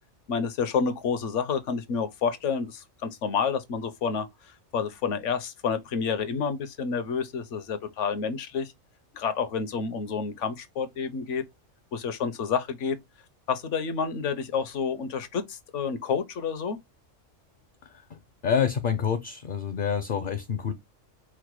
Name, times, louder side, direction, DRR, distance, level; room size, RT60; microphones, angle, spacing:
voice 1, 0.3-4.3 4.7-8.7 9.1-11.4 11.9-13.0 13.5-16.8, left 6 dB, 70° left, 1.1 m, -29 dB
voice 2, 17.8-20.7, left 7 dB, 55° left, 0.6 m, -28 dB
4.8 x 2.1 x 4.6 m
omnidirectional pair, 1.3 m